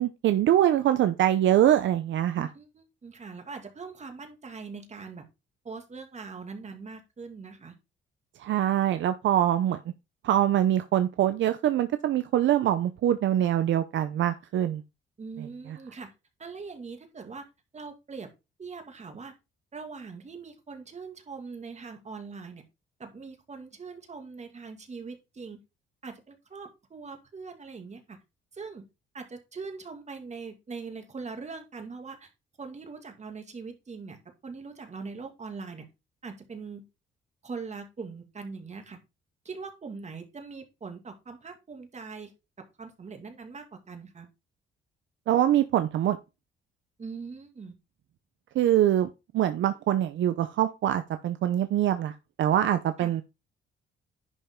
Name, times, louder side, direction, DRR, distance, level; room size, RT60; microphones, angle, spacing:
voice 1, 0.0-2.5 8.4-9.8 10.2-14.8 45.3-46.2 48.5-53.2, right 11 dB, 70° right, 0.7 m, -24 dB
voice 2, 2.4-5.3 5.6-7.8 15.2-16.1 16.4-17.4 17.7-18.3 18.6-19.3 19.7-22.6 23.0-25.6 26.0-28.2 28.5-28.9 29.1-32.3 32.6-35.9 36.2-36.9 37.4-39.0 39.4-42.3 42.6-44.3 47.0-47.8 53.0-53.1, right 4 dB, 35° right, 2.5 m, -42 dB
11.0 x 5.4 x 3.7 m
cardioid pair, 90°, 20 cm